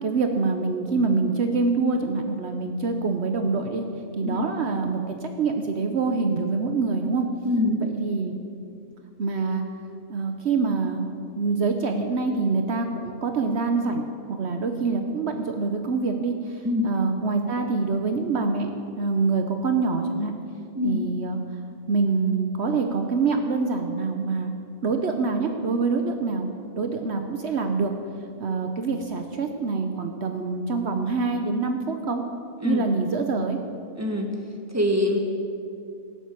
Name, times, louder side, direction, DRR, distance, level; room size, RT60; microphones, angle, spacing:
voice 1, 0.0-3.8 4.1-7.3 7.9-8.3 9.2-9.6 10.1-11.1 11.3-18.7 19.0-20.3 20.8-21.4 21.9-24.5 24.8-26.5 26.8-27.9 28.4-32.2 32.6-33.6, right 4 dB, 65° right, 5 dB, 1.1 m, -25 dB
voice 2, 7.4-7.8 16.6-16.9 20.7-21.0 32.6-32.9 33.9-34.3 34.7-35.2, left 2 dB, 15° right, 2 dB, 1.6 m, -24 dB
17.5 x 7.4 x 8.4 m, 2.5 s
omnidirectional pair, 1.3 m